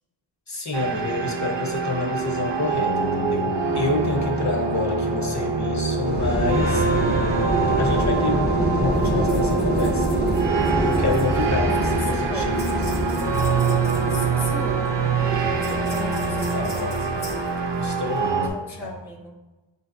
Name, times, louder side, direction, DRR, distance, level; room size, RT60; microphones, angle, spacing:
voice 1, 0.5-6.9 7.8-10.2 10.8-12.8 15.9-16.1 16.5-17.0 17.8-18.4 18.8-19.0, left 3 dB, 40° left, 1 dB, 0.8 m, -28 dB
sound 1, 0.7-18.5, right 4 dB, 65° right, 0.6 m, -25 dB
voice 2, 4.4-5.0 11.8-12.6 14.1-14.8 15.9-17.1 18.4-19.4, left 1 dB, 5° right, 0 dB, 0.4 m, -38 dB
sound 2, 6.0-17.4, right 1 dB, 20° right, 0.8 m, -26 dB
sound 3, 8.9-18.3, equal, 75° left, 1.3 m, -43 dB
6.8 x 2.6 x 2.6 m, 1.1 s
wide cardioid pair, 45°, 45 cm